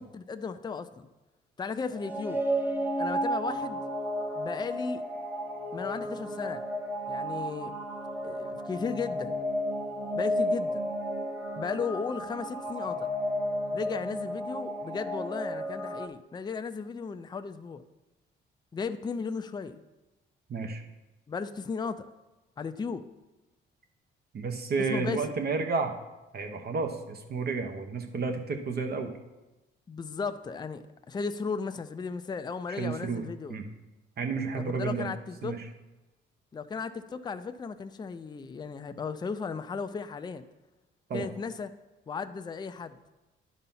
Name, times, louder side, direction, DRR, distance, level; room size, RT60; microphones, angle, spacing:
voice 1, 0.1-1.1 1.6-2.4 3.0-3.8 4.4-5.0 5.7-6.6 7.1-7.7 8.2-9.3 10.1-10.8 11.6-13.1 13.7-17.8 18.7-19.8 21.3-22.1 22.6-23.1 24.9-25.2 29.9-33.6 34.6-35.6 36.5-40.4 41.1-41.7 42.1-43.0, left 5 dB, 20° left, 9 dB, 0.4 m, -35 dB
angelic alien choir, 1.9-16.1, equal, 10° right, 0.8 m, -32 dB
voice 2, 20.5-20.8 24.3-25.9 26.3-29.1 32.8-33.2 33.5-33.7 34.2-35.1 35.4-35.6 41.1-41.3, right 4 dB, 50° right, 5 dB, 1.0 m, -31 dB
10.5 x 4.1 x 5.6 m, 1.1 s
cardioid pair, 90°, 20 cm